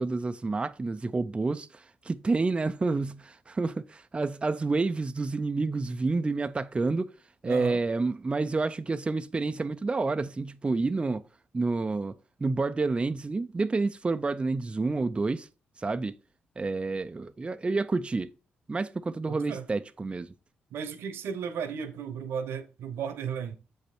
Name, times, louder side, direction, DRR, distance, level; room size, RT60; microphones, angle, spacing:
voice 1, 0.0-7.1 7.4-11.2 11.5-12.1 12.4-15.5 15.8-16.2 16.6-18.3 18.7-20.3, right 3 dB, 25° right, 0.5 m, -29 dB
voice 2, 7.4-7.8 19.3-19.6 20.7-23.6, right 7 dB, 80° right, 1.1 m, -35 dB
7.3 x 5.2 x 4.4 m
supercardioid pair, 60°, 4 cm